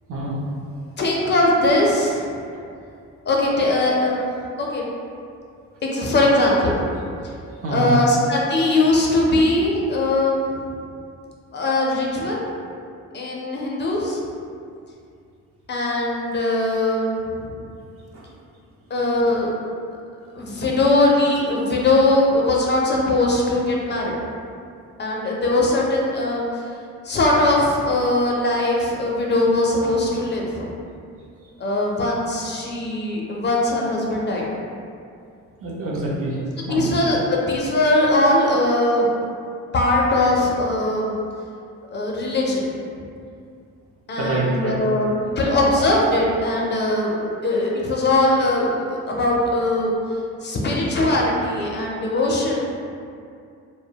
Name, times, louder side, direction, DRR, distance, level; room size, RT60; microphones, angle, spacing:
voice 1, 0.1-0.4 2.5-2.6 7.6-8.0 18.1-18.3 35.6-36.9 44.2-44.8, right 2 dB, 50° right, -4 dB, 0.6 m, -26 dB
voice 2, 1.0-2.3 3.3-4.8 5.8-6.8 7.7-10.8 11.5-12.4 13.1-14.2 15.7-17.6 18.9-19.5 20.3-24.1 25.0-26.7 27.0-30.7 31.6-34.4 36.6-39.1 39.7-41.2 41.9-43.0 44.1-49.9 50.4-52.6, left 2 dB, 35° left, -2 dB, 0.4 m, -20 dB
2.4 x 2.1 x 2.7 m, 2.4 s
cardioid pair, 90°, 30 cm